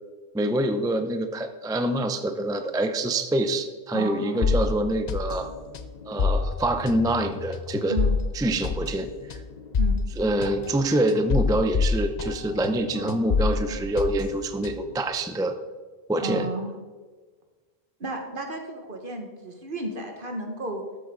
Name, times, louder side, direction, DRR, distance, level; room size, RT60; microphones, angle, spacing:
voice 1, 0.3-5.5 6.1-8.0 8.3-9.4 10.2-15.6 16.1-16.5, right 1 dB, 5° right, 8 dB, 0.5 m, -26 dB
voice 2, 3.9-4.9 7.9-8.2 9.8-10.0 12.9-13.8 16.1-16.7 18.0-20.8, right 2 dB, 60° right, 3 dB, 1.7 m, -33 dB
sound 1, 4.4-12.8 13.1-15.0, left 4 dB, 45° left, 0.7 m, -27 dB
13.5 x 7.7 x 3.8 m, 1.4 s
omnidirectional pair, 1.0 m